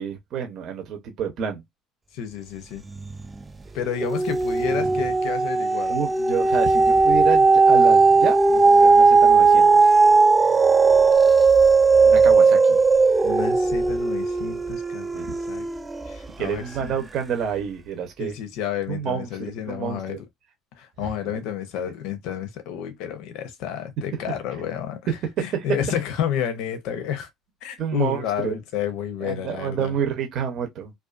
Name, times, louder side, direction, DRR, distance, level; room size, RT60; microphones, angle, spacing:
voice 1, 0.0-1.6 5.9-9.7 12.0-12.8 15.1-15.3 16.4-18.3 18.9-20.2 21.0-21.4 25.4-25.6 27.8-28.6 29.2-30.9, right 7 dB, 60° right, 0.7 m, -29 dB
voice 2, 2.1-2.8 3.7-6.0 13.2-15.7 16.1-16.9 18.2-20.2 20.8-27.3 27.6-30.0, left 9 dB, 80° left, 0.5 m, -30 dB
sound 1, 2.9-3.4 3.8-16.3 16.8-16.9, right 4 dB, 20° right, 0.4 m, -17 dB
2.4 x 2.3 x 2.4 m
cardioid pair, 105°, 0 cm